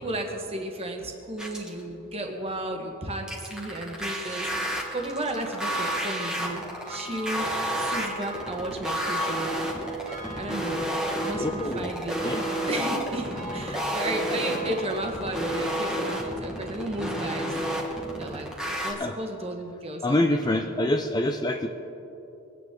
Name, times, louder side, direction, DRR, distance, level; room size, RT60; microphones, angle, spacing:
voice 1, 0.0-9.7 10.3-10.8 11.2-12.2 12.7-17.5 18.2-20.7, right 1 dB, 25° right, 2 dB, 1.4 m, -34 dB
sound 1, 1.4-1.8 3.3-18.9, right 1 dB, 5° right, 1.4 m, -30 dB
Church bell, 3.6-17.2 17.6-17.7, equal, 65° right, 2.0 m, -42 dB
voice 2, 6.5-6.8 11.4-11.9 12.2-12.4 19.0-19.2 20.0-21.7, left 1 dB, 20° left, 4 dB, 0.4 m, -26 dB
22.0 x 9.1 x 3.8 m, 3.0 s
head